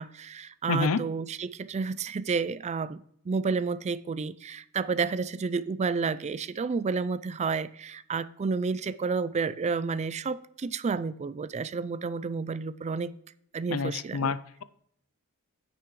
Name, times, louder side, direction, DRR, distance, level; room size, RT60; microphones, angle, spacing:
voice 1, 0.0-13.1 13.5-14.3, right 4 dB, 30° right, 0.4 m, -31 dB
voice 2, 0.7-1.0 13.7-14.6, left 4 dB, 65° left, 0.6 m, -28 dB
9.9 x 9.4 x 3.1 m
head